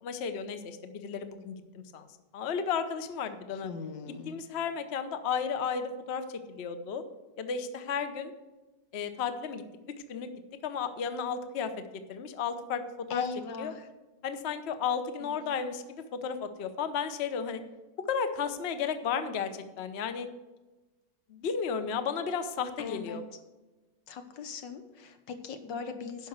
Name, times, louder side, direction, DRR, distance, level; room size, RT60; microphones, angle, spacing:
voice 1, 0.0-2.1 2.3-3.7 4.2-7.0 7.4-8.3 8.9-9.6 10.1-10.3 10.6-11.7 12.1-12.8 13.1-13.2 13.6-13.7 14.2-17.6 18.1-20.3 21.3-23.2, left 6 dB, 50° left, 9 dB, 0.8 m, -33 dB
voice 2, 3.6-4.4 13.1-13.9 15.2-15.6 22.8-23.4 24.1-26.3, left 5 dB, 80° left, 8 dB, 1.7 m, -39 dB
11.5 x 5.3 x 8.0 m, 1.1 s
omnidirectional pair, 2.0 m